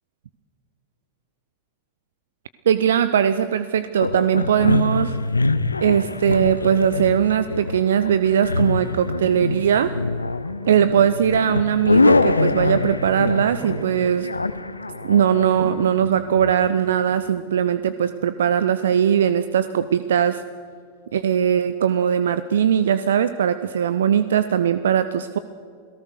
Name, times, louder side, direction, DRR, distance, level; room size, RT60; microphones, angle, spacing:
voice 1, 2.7-5.2 5.8-9.9 10.7-14.3 15.0-20.4 21.1-25.4, right 9 dB, 65° right, 13 dB, 0.7 m, -20 dB
sound 1, 4.0-16.7, left 3 dB, 80° left, 0.8 m, -24 dB
sound 2, 6.3-20.3 22.0-22.1, right 4 dB, 30° right, 7.9 m, -44 dB
28.5 x 17.5 x 6.5 m, 2.2 s
figure-of-eight pair, 90°, 0 cm